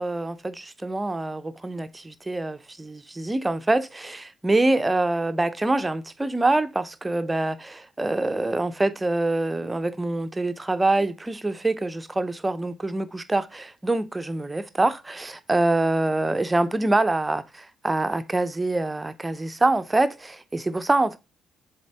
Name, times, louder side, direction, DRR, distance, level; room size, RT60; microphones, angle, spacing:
voice 1, 0.0-21.2, right 2 dB, 20° right, 0.7 m, -25 dB
7.3 x 3.5 x 4.5 m
figure-of-eight pair, 40°, 0 cm